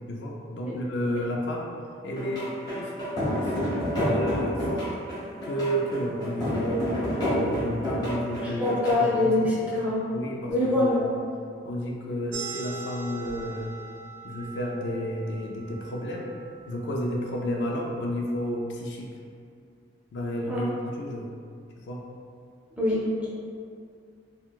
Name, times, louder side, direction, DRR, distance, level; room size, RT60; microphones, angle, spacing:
voice 1, 0.1-1.7 2.0-2.9 3.3-3.5 4.0-4.9 5.4-6.9 7.3-9.3 10.1-11.1 11.6-13.7 14.2-16.3 16.7-19.1 20.1-20.7 21.0-21.3 21.8-22.0, equal, 65° left, -1 dB, 0.4 m, -31 dB
sound 1, 2.2-8.9, equal, 25° left, 1.2 m, -28 dB
voice 2, 8.4-10.0 10.5-11.1 20.5-20.6 22.8-23.0, left 2 dB, 5° right, -8 dB, 0.6 m, -24 dB
sound 2, 12.3-17.5, right 4 dB, 80° right, 0.6 m, -41 dB
3.7 x 2.2 x 2.3 m, 2.3 s
head